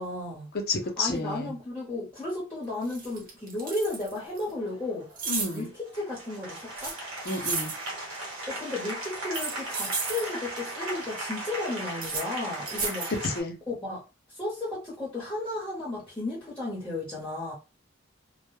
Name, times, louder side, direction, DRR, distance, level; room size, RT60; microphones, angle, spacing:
voice 1, 0.0-0.5 1.0-5.1 5.5-7.0 8.5-13.1 13.7-14.0 14.3-17.5, left 2 dB, 10° left, 0.9 m, -34 dB
voice 2, 0.7-1.5 5.3-5.7 7.3-7.7 13.2-13.6, left 3 dB, 50° left, 0.6 m, -30 dB
sound 1, 2.3-2.4 2.8-4.4 5.2-5.6 6.8-7.8 9.2-10.3 11.9-12.3 12.7-13.2, right 4 dB, 45° right, 0.7 m, -33 dB
Applause, 4.3-13.4, right 1 dB, 80° right, 1.0 m, -38 dB
2.2 x 2.1 x 3.1 m
head